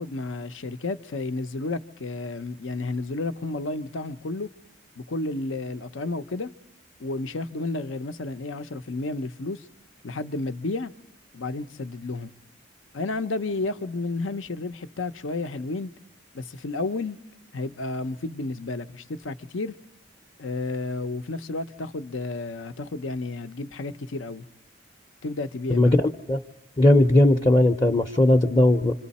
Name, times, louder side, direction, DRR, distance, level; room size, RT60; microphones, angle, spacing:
voice 1, 0.0-4.5 5.0-6.5 7.0-9.7 10.0-10.9 11.3-12.3 12.9-15.9 16.3-17.2 17.5-19.7 20.4-24.4 25.2-26.0, left 2 dB, 80° left, 0.7 m, -31 dB
voice 2, 25.7-26.4 26.8-28.9, left 1 dB, 25° left, 0.6 m, -18 dB
26.5 x 26.0 x 4.2 m
head